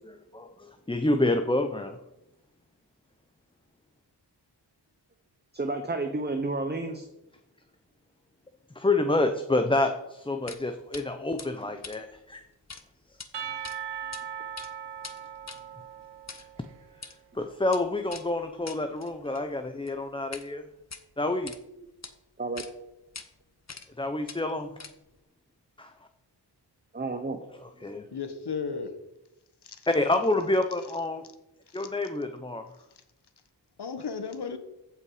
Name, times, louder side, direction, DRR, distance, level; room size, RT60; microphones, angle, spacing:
voice 1, 0.1-2.0 8.7-12.4 16.4-16.5 17.0-20.6 21.2-21.5 24.0-24.8 25.8-25.9 27.6-28.1 29.9-31.2 31.7-32.7, left 2 dB, 10° left, 0.7 m, -28 dB
voice 2, 5.5-7.0 22.4-22.6 26.9-27.4, right 2 dB, 25° right, 0.9 m, -31 dB
sound 1, 10.5-10.6 10.9-11.0 11.4-12.8 13.1-13.3 13.6-14.2 14.5-20.5 20.8-21.6 22.0-22.1 22.6-22.7 23.1-23.3 23.7-24.0 24.3-25.2, left 4 dB, 35° left, 1.0 m, -44 dB
Percussion / Church bell, 13.3-17.0, right 9 dB, 70° right, 0.7 m, -39 dB
voice 3, 28.1-28.9 29.6-29.9 31.7-31.9 33.8-34.6, left 5 dB, 65° left, 1.3 m, -34 dB
15.0 x 5.7 x 4.9 m
wide cardioid pair, 80°, 43 cm